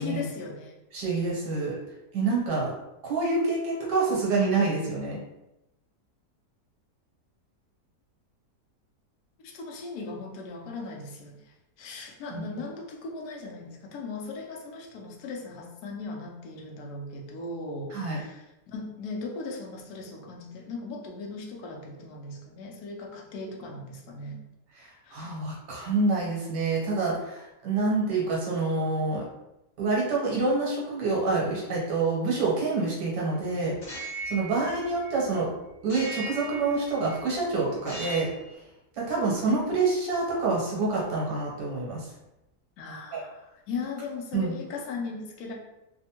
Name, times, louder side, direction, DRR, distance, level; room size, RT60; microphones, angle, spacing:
voice 1, 0.0-0.7 9.4-24.4 25.0-25.2 42.8-45.5, left 3 dB, 70° left, 1 dB, 1.1 m, -38 dB
voice 2, 0.9-1.8 2.1-2.7 3.0-5.2 12.3-12.4 17.9-18.2 24.8-29.2 29.8-33.7 34.3-35.5 35.8-38.3 39.0-42.1 43.1-43.2 44.3-44.5, right 3 dB, 80° right, -4 dB, 1.6 m, -27 dB
sound 1, 33.8-35.3 35.9-37.2 37.8-38.5, right 2 dB, 40° left, 1.2 m, -38 dB
3.4 x 2.1 x 2.8 m, 0.92 s
omnidirectional pair, 1.8 m